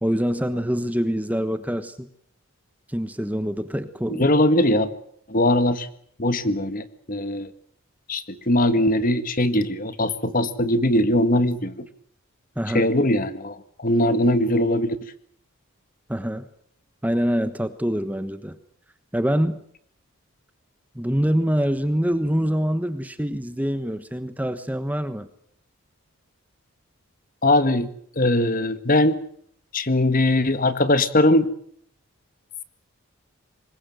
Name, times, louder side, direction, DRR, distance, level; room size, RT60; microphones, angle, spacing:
voice 1, 0.0-2.1 2.9-4.4 12.6-12.9 16.1-16.5 17.0-18.6 19.1-19.6 20.9-25.3, equal, 5° right, 11 dB, 1.2 m, -25 dB
voice 2, 4.2-4.9 5.3-5.9 6.2-7.5 8.1-11.7 12.7-15.0 27.4-27.9 28.2-29.2 29.7-31.5, left 1 dB, 40° left, 11 dB, 1.7 m, -20 dB
25.5 x 21.5 x 7.8 m, 0.66 s
head